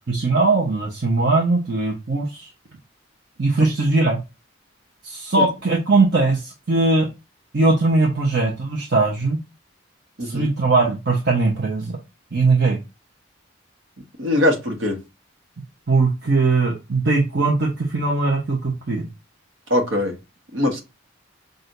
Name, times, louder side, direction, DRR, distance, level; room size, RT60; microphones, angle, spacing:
voice 1, 0.1-2.5 3.4-4.2 5.0-7.1 7.5-9.4 10.3-12.0 12.3-12.8 15.9-19.1, right 3 dB, 55° right, 1.0 m, -20 dB
voice 2, 10.2-10.5 14.2-15.0 19.7-20.2 20.5-20.8, left 1 dB, 75° right, 1.4 m, -21 dB
6.2 x 2.6 x 2.6 m
head